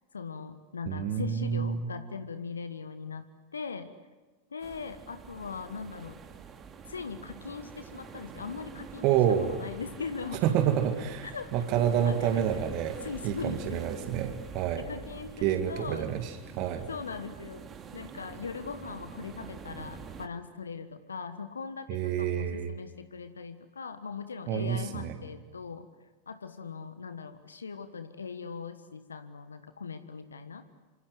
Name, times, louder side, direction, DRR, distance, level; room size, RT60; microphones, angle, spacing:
voice 1, 0.1-3.2 3.5-3.9 4.5-6.2 6.9-9.2 9.5-10.4 11.2-11.4 12.0-12.6 13.0-13.8 14.8-16.1 16.6-17.7 17.9-25.9 26.3-30.6, left 5 dB, 75° left, 10 dB, 1.4 m, -40 dB
voice 2, 0.9-1.9 9.0-9.5 10.4-13.0 13.2-14.8 15.4-16.9 21.9-22.7 24.5-25.2, right 9 dB, 40° right, 6 dB, 2.1 m, -28 dB
sound 1, 4.6-20.3, right 6 dB, 25° right, 2.6 m, -46 dB
27.0 x 26.5 x 8.0 m, 1.2 s
figure-of-eight pair, 90°, 0 cm